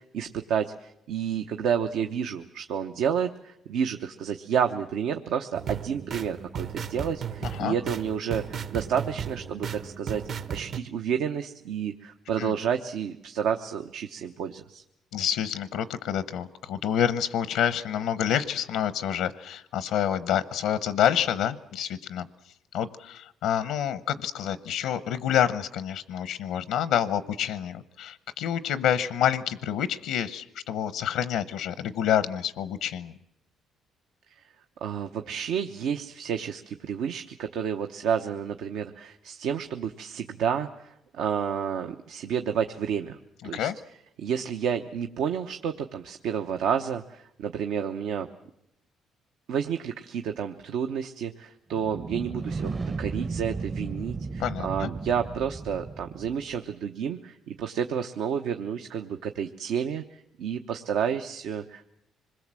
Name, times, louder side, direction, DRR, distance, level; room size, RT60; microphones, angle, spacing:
voice 1, 0.0-10.2 10.5-14.8 34.8-43.2 43.4-43.7 44.2-48.3 49.5-52.7 53.0-61.9, right 8 dB, 80° right, 6 dB, 0.9 m, -30 dB
sound 1, 5.5-10.8, right 7 dB, 60° right, 1.3 m, -35 dB
voice 2, 7.4-7.8 12.4-12.5 15.1-22.3 22.7-33.1 43.4-43.8 54.4-54.9, left 9 dB, 90° left, 14 dB, 0.8 m, -28 dB
sound 2, 51.7-56.6, right 4 dB, 35° right, 0.8 m, -34 dB
26.0 x 21.0 x 7.6 m, 0.83 s
cardioid pair, 95°, 0 cm